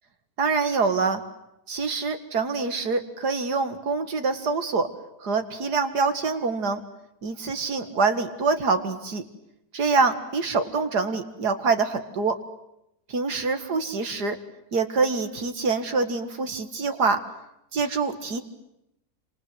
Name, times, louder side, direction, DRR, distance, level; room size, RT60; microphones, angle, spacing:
voice 1, 0.4-1.2 1.7-4.9 5.2-6.8 7.2-9.2 9.7-12.4 13.1-14.4 14.7-17.2 17.7-18.4, right 4 dB, 75° right, 7 dB, 2.4 m, -25 dB
28.0 x 26.5 x 8.0 m, 0.82 s
omnidirectional pair, 1.8 m